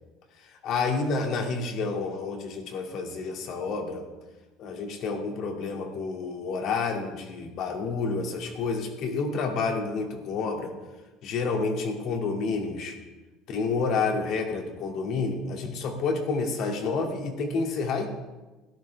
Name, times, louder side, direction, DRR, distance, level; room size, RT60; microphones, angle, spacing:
voice 1, 0.4-4.1 4.6-10.7 11.2-13.0 13.5-18.1, left 4 dB, 60° left, 2 dB, 2.5 m, -29 dB
16.0 x 12.0 x 3.6 m, 1.2 s
supercardioid pair, 95°, 0 cm